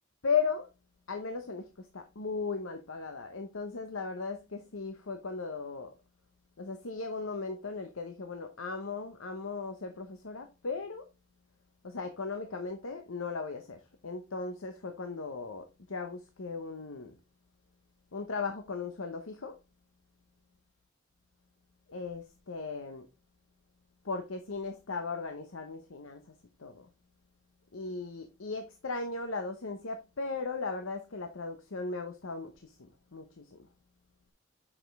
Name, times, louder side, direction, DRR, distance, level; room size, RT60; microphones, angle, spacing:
voice 1, 0.2-0.7 1.1-5.9 6.6-11.1 11.8-17.2 18.1-19.6 21.9-23.1 24.0-26.2 26.6-26.9 27.7-33.7, left 4 dB, 85° left, 0.9 m, -37 dB
7.1 x 6.1 x 3.3 m
head